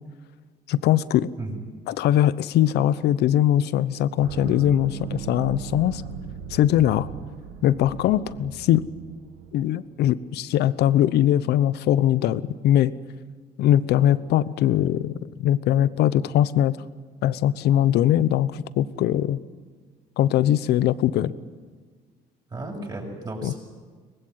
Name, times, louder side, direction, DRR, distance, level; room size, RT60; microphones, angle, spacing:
voice 1, 0.7-1.3 1.9-6.0 6.5-7.1 7.6-8.8 9.5-12.9 13.6-16.8 17.2-19.4 20.2-21.3 23.4-23.6, left 12 dB, 75° left, 16 dB, 1.0 m, -21 dB
sound 1, 4.2-9.7, right 8 dB, 85° right, 1.6 m, -38 dB
voice 2, 22.5-23.6, right 2 dB, 25° right, 1 dB, 6.9 m, -34 dB
23.5 x 20.0 x 9.4 m, 1.5 s
cardioid pair, 110°, 17 cm